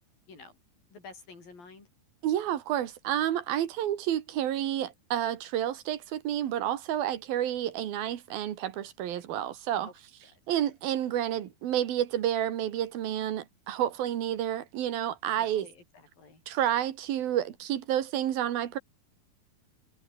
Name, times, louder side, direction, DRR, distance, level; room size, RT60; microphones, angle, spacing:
voice 1, 0.3-0.6 0.9-1.9 9.9-10.0 10.2-10.3 15.3-16.4, left 4 dB, 70° left, 9.0 m, -50 dB
voice 2, 2.2-9.9 10.5-15.7 16.5-18.8, right 11 dB, 80° right, 3.5 m, -30 dB
omnidirectional pair, 4.2 m